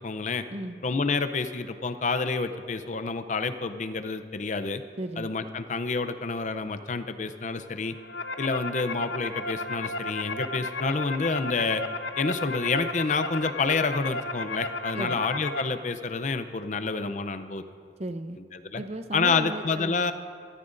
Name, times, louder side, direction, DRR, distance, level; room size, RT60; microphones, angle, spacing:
voice 1, 0.0-0.4 0.8-4.8 5.2-8.0 8.4-11.8 12.2-17.6 18.5-18.8 19.1-20.1, left 4 dB, 40° left, 10 dB, 0.5 m, -28 dB
voice 2, 5.0-5.3 14.9-15.2 18.0-18.4 18.8-20.0, right 1 dB, 35° right, 9 dB, 0.6 m, -35 dB
sound 1, 7.8-15.6, left 2 dB, 75° left, 0.8 m, -34 dB
24.5 x 13.5 x 2.6 m, 2.1 s
head